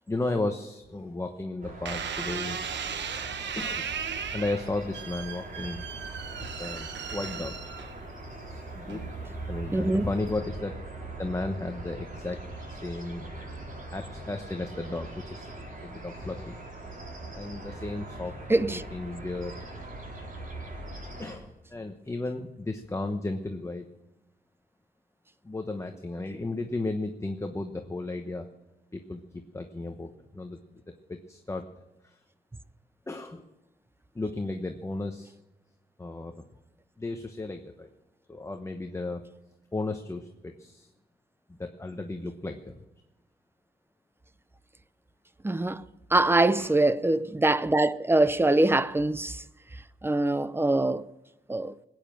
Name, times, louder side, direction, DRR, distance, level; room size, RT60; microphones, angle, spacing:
voice 1, 0.1-2.6 3.6-3.9 4.3-5.8 6.6-7.5 8.5-9.1 9.4-10.8 11.2-13.3 13.9-15.5 15.8-16.6 17.3-18.3 18.7-19.5 21.2-23.9 25.4-28.5 28.9-31.7 32.0-32.2 33.1-33.5 34.1-35.3 36.0-36.4 37.0-37.9 38.3-39.2 39.7-40.9 41.5-42.8 46.6-46.8, left 2 dB, 15° left, 1.0 m, -34 dB
sound 1, 1.6-21.4, right 2 dB, 50° right, 4.6 m, -41 dB
sound 2, 1.9-8.3 8.9-9.4, right 7 dB, 85° right, 1.1 m, -36 dB
voice 2, 9.7-10.1 18.5-18.8 45.4-45.8 46.1-49.4 50.0-51.1 51.5-51.7, right 2 dB, 15° right, 0.6 m, -23 dB
21.0 x 9.2 x 7.6 m
wide cardioid pair, 135°, 18 cm